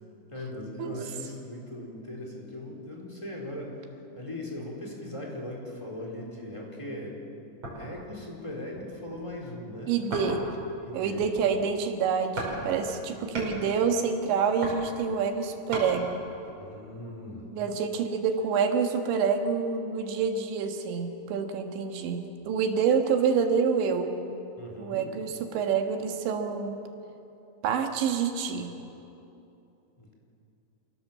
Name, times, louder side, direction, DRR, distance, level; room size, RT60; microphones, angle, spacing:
voice 1, 0.3-3.7 4.2-7.2 7.7-9.9 10.8-11.2 13.1-13.5 16.6-17.5 24.6-25.1 30.0-30.1, left 1 dB, 5° left, -2 dB, 3.6 m, -39 dB
sound 1, 7.6-8.1 8.7-9.3 10.1-10.7 11.0-11.7 12.4-12.6 12.9-13.6 14.3-15.9 16.4-16.5, right 1 dB, 25° right, 6.0 m, -37 dB
voice 2, 9.9-10.4 10.9-16.2 17.5-24.2 24.8-26.8 27.6-28.7, right 6 dB, 85° right, 5 dB, 3.9 m, -27 dB
28.5 x 17.5 x 7.6 m, 2.8 s
omnidirectional pair, 5.0 m